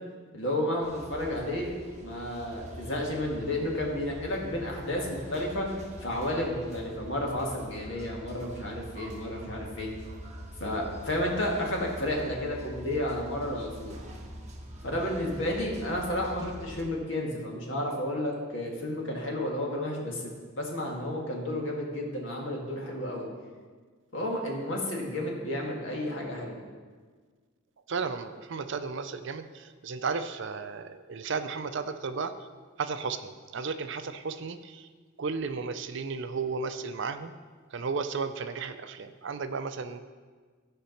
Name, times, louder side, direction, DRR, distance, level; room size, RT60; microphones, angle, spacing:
voice 1, 0.3-5.7 6.0-9.9 10.6-14.0 14.8-20.2 20.6-23.3 24.1-26.6, left 1 dB, 60° left, -1 dB, 2.0 m, -32 dB
sound 1, 0.8-16.8, equal, 35° right, 1.1 m, -44 dB
voice 2, 27.9-32.3 32.8-34.9 35.2-37.3 37.7-40.0, right 5 dB, 60° right, 10 dB, 0.5 m, -34 dB
13.5 x 5.1 x 5.8 m, 1.5 s
head